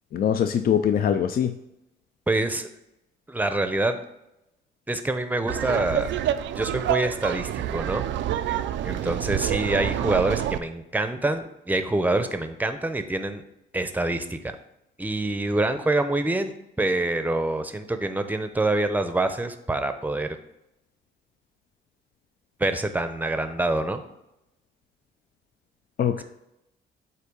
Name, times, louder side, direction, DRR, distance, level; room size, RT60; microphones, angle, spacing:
voice 1, 0.1-1.5 26.0-26.2, left 8 dB, 50° left, 8 dB, 0.4 m, -22 dB
voice 2, 2.3-2.7 3.3-4.0 4.9-6.1 6.5-8.1 8.8-13.4 13.7-14.5 15.0-20.3 22.6-24.0, right 2 dB, 10° right, 8 dB, 0.6 m, -26 dB
Laughter, 5.5-10.6, right 11 dB, 70° right, 0.4 m, -27 dB
8.1 x 2.7 x 5.3 m, 0.86 s
cardioid pair, 90°, 20 cm